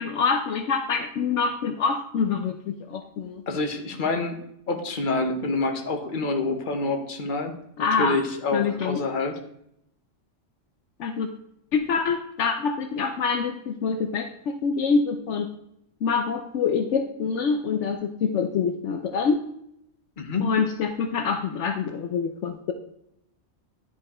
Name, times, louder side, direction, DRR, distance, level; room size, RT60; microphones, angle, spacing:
voice 1, 0.0-3.4 7.8-8.2 8.5-9.0 11.0-11.3 11.7-15.5 16.0-19.4 20.4-22.7, left 5 dB, 70° left, 6 dB, 1.0 m, -25 dB
voice 2, 3.5-4.4 4.7-9.4 20.2-20.5, left 3 dB, 45° left, 5 dB, 1.1 m, -27 dB
10.5 x 4.6 x 4.3 m, 0.75 s
omnidirectional pair, 1.3 m